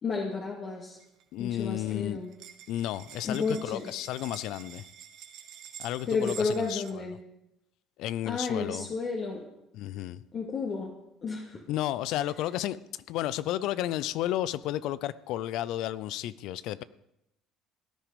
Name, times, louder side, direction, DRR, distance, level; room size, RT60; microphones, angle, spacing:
voice 1, 0.0-1.0 1.4-2.3 3.2-3.9 6.1-7.2 8.2-9.4 10.3-10.9 11.2-11.6, left 4 dB, 45° left, -2 dB, 2.4 m, -32 dB
sound 1, 1.0-1.5 1.9-2.0 2.2-6.9, right 9 dB, 70° right, 1.6 m, -48 dB
voice 2, 1.3-2.2 2.7-4.8 5.8-7.0 8.0-8.9 9.7-10.2 11.7-12.8 13.1-16.8, left 13 dB, 70° left, 18 dB, 0.5 m, -32 dB
17.0 x 10.0 x 5.2 m, 0.84 s
supercardioid pair, 80°, 0 cm